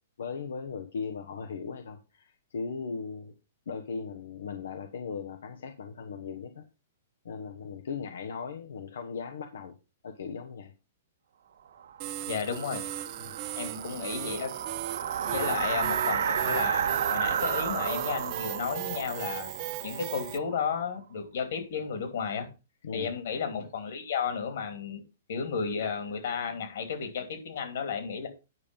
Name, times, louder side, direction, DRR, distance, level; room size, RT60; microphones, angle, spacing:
voice 1, 0.2-3.3 3.7-6.6 7.2-9.8 10.0-10.7 13.2-13.3 13.6-13.7 15.3-15.5 22.8-23.1, left 5 dB, 85° left, 6 dB, 1.2 m, -38 dB
sound 1, 11.8-20.7, right 8 dB, 80° right, 1.6 m, -32 dB
sound 2, 12.0-20.4, right 15 dB, 30° right, 0.6 m, -38 dB
voice 2, 12.3-12.8 13.6-14.5 15.2-19.5 19.8-22.5 22.9-25.0 25.3-28.3, left 6 dB, 60° left, 7 dB, 2.9 m, -33 dB
9.6 x 5.2 x 5.3 m, 0.30 s
hypercardioid pair, 170°, 0 cm